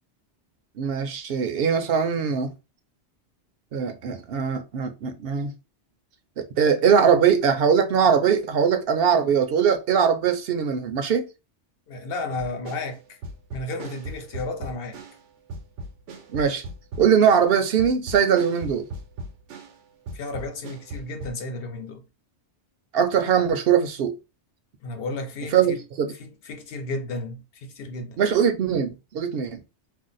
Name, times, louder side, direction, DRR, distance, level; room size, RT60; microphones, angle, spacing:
voice 1, 0.8-2.5 3.7-5.5 6.4-11.3 16.3-16.6 17.0-18.9 22.9-24.1 25.5-26.1 28.2-29.6, right 7 dB, 65° right, 0.7 m, -21 dB
voice 2, 11.9-13.2 13.5-15.0 20.1-22.0 24.8-25.8 26.1-28.2, left 2 dB, 60° left, 0.9 m, -33 dB
sound 1, 12.4-15.2 15.5-19.8 20.1-21.3, right 1 dB, 85° right, 1.0 m, -38 dB
2.6 x 2.0 x 3.9 m
omnidirectional pair, 1.2 m